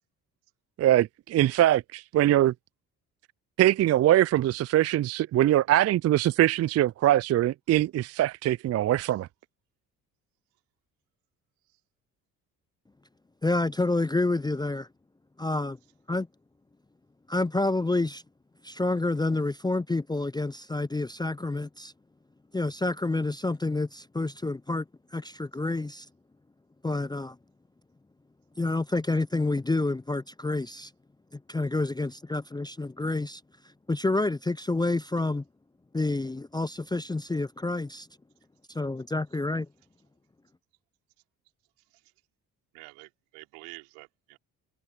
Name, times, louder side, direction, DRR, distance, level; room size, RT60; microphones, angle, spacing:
voice 1, 0.8-2.5 3.6-9.3, right 13 dB, 35° right, 0.4 m, -22 dB
voice 2, 13.4-14.9 15.4-15.8 16.1-16.3 17.3-18.2 18.6-21.9 22.5-24.8 25.1-26.1 26.8-27.4 28.6-30.9 31.5-33.4 33.9-35.4 35.9-38.1 38.7-39.7, left 2 dB, 10° left, 0.6 m, -28 dB
voice 3, 42.7-44.4, right 33 dB, 75° right, 5.3 m, -48 dB
hypercardioid pair, 50°, 44 cm